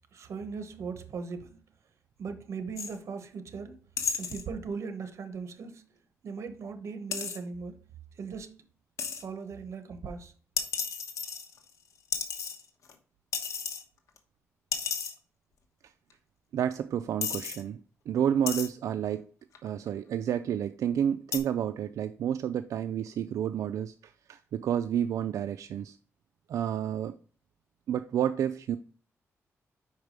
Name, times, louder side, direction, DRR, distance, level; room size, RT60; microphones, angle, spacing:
voice 1, 0.1-1.6 2.2-3.8 4.2-5.8 6.2-7.8 8.1-8.6 9.2-10.3, right 5 dB, 60° right, 1.0 m, -39 dB
sound 1, 2.8-3.0 4.0-4.4 7.1-7.4 9.0-9.2 10.6-11.7 12.1-12.9 13.3-13.8 14.2-14.3 14.7-15.1 16.1-16.2 16.7-16.8 17.2-17.6 18.5-18.7 19.5-19.9 21.3-21.4, left 6 dB, 80° left, 1.1 m, -33 dB
voice 2, 16.5-17.8 18.1-19.3 19.6-26.0 26.5-27.1 27.9-28.8, right 9 dB, 85° right, 0.3 m, -30 dB
5.6 x 4.7 x 5.1 m
wide cardioid pair, 135°, 5 cm